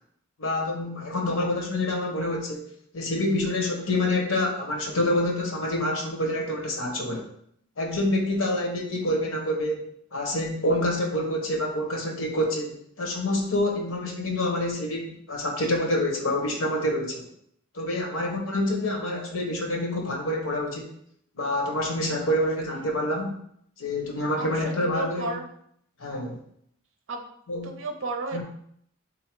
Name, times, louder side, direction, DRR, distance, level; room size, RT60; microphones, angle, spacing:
voice 1, 0.4-7.3 7.8-9.8 10.1-17.3 17.7-20.9 21.4-23.4 23.8-25.4 26.0-26.4 27.5-27.8 28.3-28.4, left 1 dB, 85° left, 2 dB, 1.0 m, -27 dB
voice 2, 24.4-25.5 27.1-27.2 27.6-28.4, right 2 dB, 70° right, 4 dB, 0.6 m, -33 dB
3.8 x 2.7 x 4.5 m, 0.68 s
head